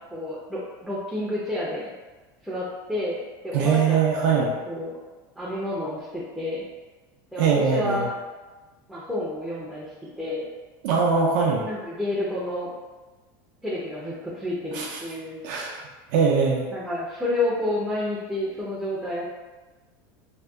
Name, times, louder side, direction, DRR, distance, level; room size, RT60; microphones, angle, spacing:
voice 1, 0.1-1.9 2.4-3.2 3.4-4.4 4.7-4.9 5.4-6.6 7.3-8.1 8.9-10.5 11.6-12.7 13.6-15.4 16.7-19.2, left 1 dB, ahead, -9 dB, 0.4 m, -30 dB
voice 2, 3.5-4.5 7.4-8.1 10.8-11.7 14.7-15.0 15.4-15.8 16.1-16.7, right 5 dB, 65° right, -2 dB, 0.4 m, -22 dB
2.6 x 2.1 x 2.2 m, 1.2 s
supercardioid pair, 145°, 11 cm